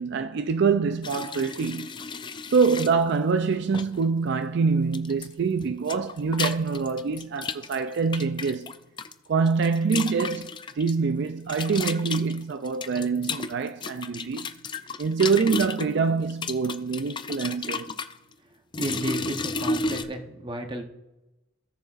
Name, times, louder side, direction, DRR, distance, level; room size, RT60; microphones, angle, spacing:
voice 1, 0.0-1.9 2.5-8.7 9.3-14.5 15.0-17.9, right 5 dB, 55° right, 0.3 m, -25 dB
sound 1, 1.0-2.9 3.7-4.0 4.9-5.3 5.6-9.1 9.5-10.9 11.5-15.9 16.3-18.1 18.7-20.0, left 4 dB, 25° left, 0.4 m, -33 dB
voice 2, 18.8-20.8, right 1 dB, 25° right, 0.9 m, -32 dB
17.5 x 6.5 x 2.5 m
head